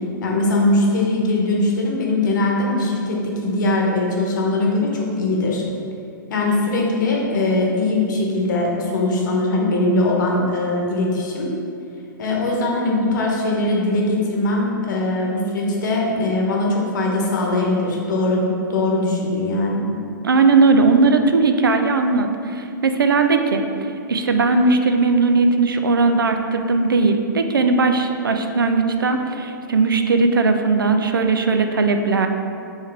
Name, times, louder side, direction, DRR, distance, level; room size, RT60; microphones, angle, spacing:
voice 1, 0.2-5.6 6.3-11.5 12.2-19.9, left 2 dB, 65° left, -1 dB, 1.0 m, -21 dB
voice 2, 20.2-32.3, right 3 dB, 90° right, 6 dB, 0.4 m, -18 dB
4.4 x 3.4 x 3.3 m, 2.6 s
hypercardioid pair, 120°, 11 cm